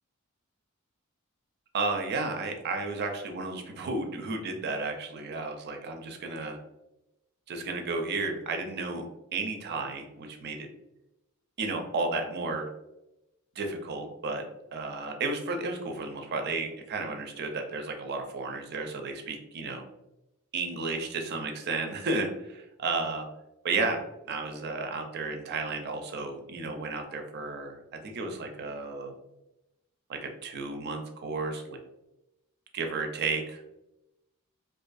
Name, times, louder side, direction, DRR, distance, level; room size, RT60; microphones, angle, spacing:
voice 1, 1.7-6.6 7.5-9.1 9.3-10.7 11.6-12.7 13.6-14.4 14.7-19.8 20.5-23.3 23.6-24.0 24.3-29.1 30.1-31.8 32.7-33.7, right 3 dB, 50° right, 4 dB, 0.4 m, -33 dB
2.5 x 2.5 x 2.3 m, 0.92 s
head